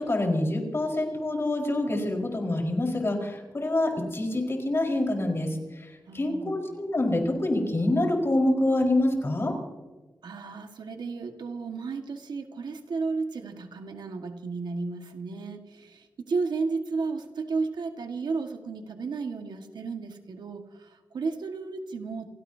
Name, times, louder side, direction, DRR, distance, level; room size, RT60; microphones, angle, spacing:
voice 1, 0.0-5.5 6.1-9.6, left 1 dB, 35° left, 0 dB, 4.5 m, -26 dB
voice 2, 6.1-6.5 10.2-22.3, right 4 dB, 85° right, 5 dB, 1.6 m, -33 dB
28.5 x 17.0 x 2.7 m, 1.2 s
wide cardioid pair, 85°, 7 cm